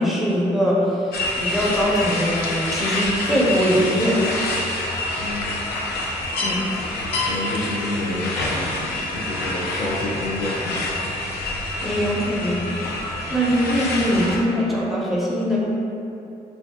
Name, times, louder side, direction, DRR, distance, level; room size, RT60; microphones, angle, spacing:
voice 1, 0.0-4.3 6.4-6.7 11.8-12.6 13.3-15.7, equal, ahead, -6 dB, 0.6 m, -22 dB
sound 1, 1.1-14.4, left 2 dB, 85° left, 0.4 m, -27 dB
voice 2, 5.2-5.6 7.2-10.9, left 1 dB, 45° left, -4 dB, 0.7 m, -29 dB
2.8 x 2.2 x 2.8 m, 2.7 s
cardioid pair, 85°, 16 cm